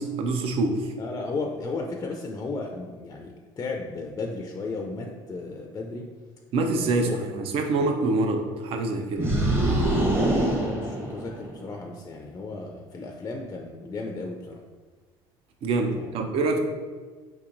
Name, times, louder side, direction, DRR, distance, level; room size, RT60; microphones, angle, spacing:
voice 1, 0.0-0.9 6.5-9.4 15.6-16.6, right 3 dB, 60° right, 4 dB, 0.5 m, -25 dB
voice 2, 1.0-6.1 7.0-7.2 10.0-14.6 15.9-16.2, left 3 dB, 30° left, 2 dB, 0.4 m, -34 dB
sound 1, 9.2-11.7, right 1 dB, 20° right, 1.0 m, -24 dB
4.5 x 2.9 x 2.5 m, 1.4 s
supercardioid pair, 85°, 11 cm